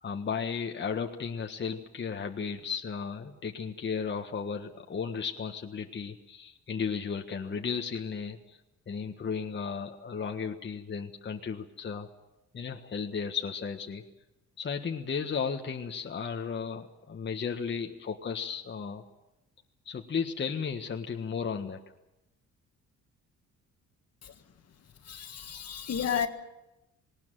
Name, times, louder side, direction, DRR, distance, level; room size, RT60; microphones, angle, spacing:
voice 1, 0.0-8.6 8.9-12.1 12.5-14.0 14.6-19.0 19.8-21.8, left 6 dB, 35° left, 1.5 m, -34 dB
voice 2, 25.1-26.3, left 8 dB, 55° left, 1.8 m, -32 dB
19.0 x 18.0 x 9.2 m
cardioid pair, 90°, 30 cm